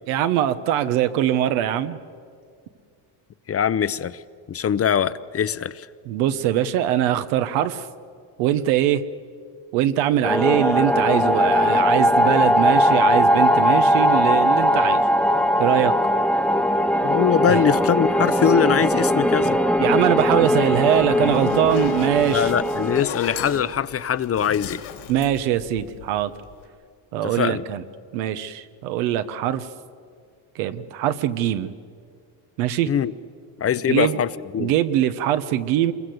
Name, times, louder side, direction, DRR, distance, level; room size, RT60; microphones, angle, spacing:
voice 1, 0.1-2.0 6.1-7.9 8.4-9.0 9.7-15.0 15.6-15.9 17.5-17.6 19.8-22.5 25.1-26.3 27.1-27.8 28.1-29.7 30.5-31.7 32.6-32.9 33.9-34.2 34.6-35.9, right 11 dB, 90° right, 11 dB, 1.4 m, -22 dB
voice 2, 3.5-4.2 4.5-5.9 17.0-19.6 22.3-24.8 27.2-27.6 32.9-33.1 33.6-34.7, left 8 dB, 30° left, 15 dB, 0.7 m, -22 dB
sound 1, 10.2-23.0, equal, ahead, 0.9 m, -19 dB
Zipper (clothing), 20.9-26.2, left 7 dB, 90° left, 3.7 m, -34 dB
26.5 x 22.5 x 8.0 m, 2.2 s
cardioid pair, 125°, 49 cm